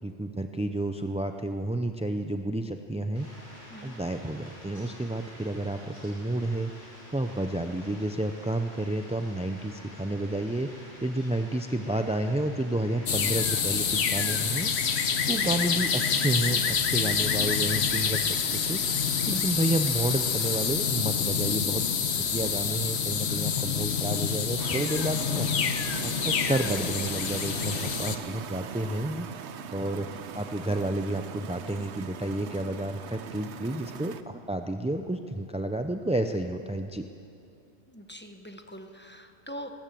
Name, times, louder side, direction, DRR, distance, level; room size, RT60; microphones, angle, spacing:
voice 1, 0.0-3.3 3.8-10.7 11.0-14.7 15.3-18.8 19.3-21.8 22.3-25.5 26.0-29.3 29.7-37.1, right 1 dB, 10° right, 6 dB, 0.4 m, -30 dB
Fowl, 3.1-20.6, equal, 30° left, 7.3 m, -49 dB
voice 2, 3.7-4.0 27.5-28.2 37.9-39.7, equal, 10° left, 5 dB, 1.1 m, -44 dB
sound 1, 13.1-28.2, left 6 dB, 75° left, 1.2 m, -27 dB
sound 2, 24.6-34.2, right 7 dB, 90° right, 1.1 m, -40 dB
20.0 x 19.5 x 7.6 m, 2.7 s
omnidirectional pair, 1.1 m